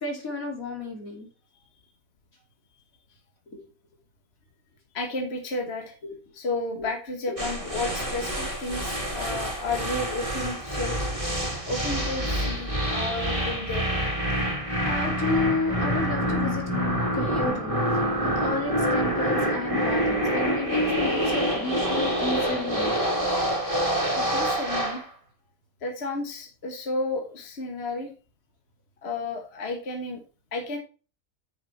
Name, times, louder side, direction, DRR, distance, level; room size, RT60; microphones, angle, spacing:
voice 1, 0.0-1.3 3.5-3.6 6.0-6.1 14.8-16.6 17.1-17.7 18.4-23.0, left 3 dB, 80° left, 2 dB, 3.3 m, -31 dB
voice 2, 4.9-5.9 6.3-11.0 11.7-13.9 24.1-25.0 25.8-28.1 29.0-30.2 30.5-30.8, left 2 dB, 50° left, 4 dB, 1.7 m, -32 dB
sound 1, 7.4-25.1, equal, 25° right, 2.3 m, -26 dB
9.9 x 6.5 x 4.2 m, 0.35 s
omnidirectional pair, 1.4 m